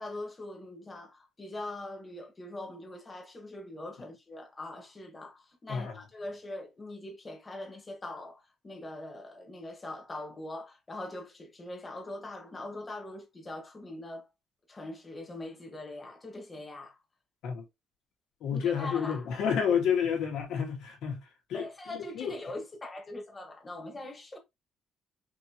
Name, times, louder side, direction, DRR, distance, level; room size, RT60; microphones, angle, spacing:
voice 1, 0.0-14.3 14.7-16.9 18.5-19.3 21.5-24.4, left 2 dB, 20° left, 1.4 m, -42 dB
voice 2, 18.4-21.2 21.5-22.4, left 7 dB, 85° left, 1.8 m, -30 dB
5.3 x 3.0 x 2.9 m
cardioid pair, 155°, 0 cm